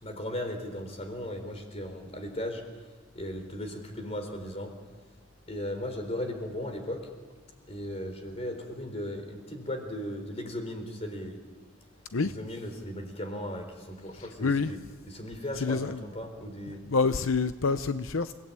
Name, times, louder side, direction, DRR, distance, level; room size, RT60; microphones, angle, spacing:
voice 1, 0.0-2.7 3.1-4.8 5.5-7.1 7.6-11.4 12.2-14.8 15.1-16.8, left 1 dB, 30° left, 4.0 m, -37 dB
voice 2, 14.2-14.7 15.6-16.0 16.8-18.3, left 4 dB, 75° left, 0.7 m, -27 dB
29.5 x 18.5 x 8.9 m
head